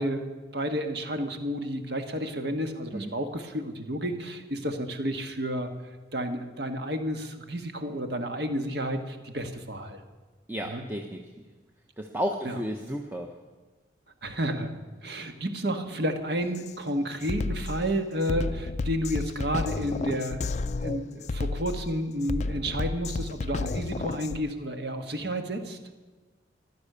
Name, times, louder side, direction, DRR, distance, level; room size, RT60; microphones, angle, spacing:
voice 1, 0.0-5.7 6.1-10.0 10.6-10.8 12.4-12.6 14.2-14.7 15.0-20.4 20.8-25.8, equal, 60° right, 6 dB, 1.4 m, -31 dB
voice 2, 10.5-11.2 12.0-13.3, equal, 10° right, 2 dB, 0.7 m, -32 dB
Drum kit, 16.5-16.7 17.2-24.4, left 3 dB, 35° left, 0.4 m, -32 dB
15.0 x 11.5 x 6.7 m, 1.3 s
head